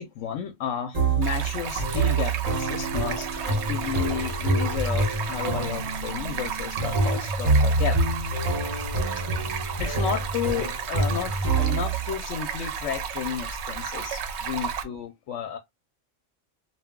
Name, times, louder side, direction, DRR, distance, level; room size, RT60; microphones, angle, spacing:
voice 1, 0.0-8.0 9.0-15.6, left 8 dB, 80° left, 0.9 m, -32 dB
sound 1, 0.9-12.1, right 2 dB, 35° right, 1.0 m, -26 dB
Stream, 1.2-14.8, right 6 dB, 65° right, 0.8 m, -33 dB
2.3 x 2.1 x 3.6 m
omnidirectional pair, 1.3 m